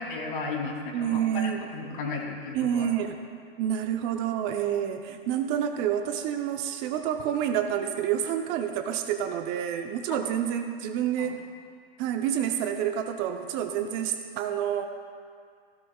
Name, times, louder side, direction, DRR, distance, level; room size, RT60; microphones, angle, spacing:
voice 1, 0.0-2.9 11.2-11.3, left 3 dB, 65° left, -1 dB, 3.1 m, -34 dB
voice 2, 0.9-1.6 2.5-3.2 3.6-11.4 12.0-14.9, right 9 dB, 35° right, 6 dB, 0.7 m, -28 dB
16.0 x 13.0 x 2.4 m, 2.1 s
hypercardioid pair, 130°, 29 cm